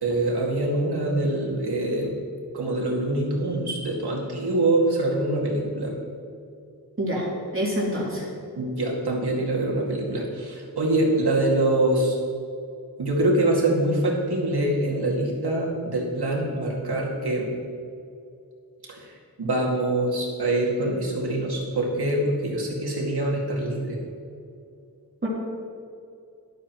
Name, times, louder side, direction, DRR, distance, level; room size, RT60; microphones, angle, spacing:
voice 1, 0.0-2.2 2.5-5.9 8.6-12.2 13.0-17.5 19.0-19.1 19.4-24.0, right 1 dB, 90° right, -2 dB, 2.3 m, -24 dB
voice 2, 7.0-7.3 7.5-8.2 25.2-25.3, equal, 35° right, -6 dB, 3.0 m, -26 dB
13.0 x 11.5 x 3.1 m, 2.5 s
wide cardioid pair, 95°, 38 cm